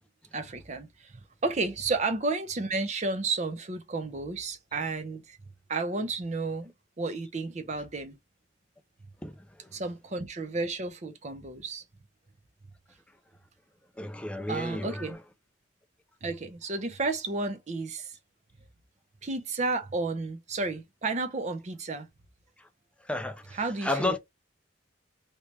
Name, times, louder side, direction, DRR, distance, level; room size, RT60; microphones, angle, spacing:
voice 1, 0.3-5.4 5.7-6.7 7.0-8.1 9.7-11.8 14.5-15.2 16.2-18.2 19.2-22.1 23.5-24.2, right 3 dB, 35° right, 0.6 m, -32 dB
voice 2, 9.2-9.7 14.0-15.2 23.0-24.2, left 2 dB, 5° left, 0.3 m, -32 dB
3.2 x 2.9 x 3.0 m
head